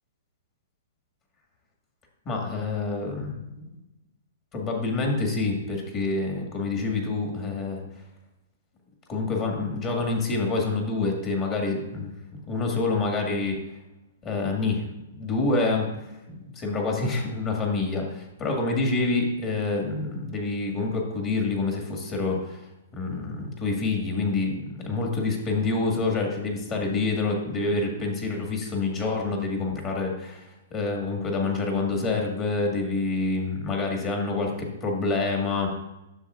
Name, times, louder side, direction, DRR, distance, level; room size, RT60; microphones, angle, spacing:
voice 1, 2.2-3.6 4.5-7.8 9.1-12.1 12.5-13.6 14.2-14.8 15.1-15.9 16.5-22.6 22.9-35.7, left 3 dB, 30° left, 0 dB, 1.7 m, -27 dB
9.9 x 6.7 x 2.5 m, 0.98 s
hypercardioid pair, 130°, 0 cm